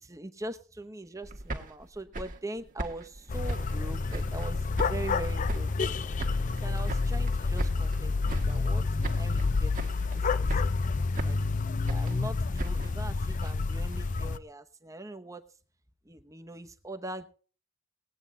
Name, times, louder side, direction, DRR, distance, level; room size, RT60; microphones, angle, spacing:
voice 1, 0.0-5.7 6.6-9.9 10.1-10.8 11.2-11.4 11.9-15.4 16.0-17.3, right 2 dB, 15° right, 8 dB, 0.9 m, -42 dB
Walking Through Snow.L, 1.2-4.5 4.8-5.9 6.2-8.0 8.3-8.8 9.0-9.5 9.7-10.2 10.5-11.5 11.9-14.1, right 1 dB, 40° right, 1.4 m, -38 dB
sound 1, 3.3-14.4, left 3 dB, 35° left, 0.5 m, -29 dB
19.5 x 8.9 x 3.7 m, 0.39 s
head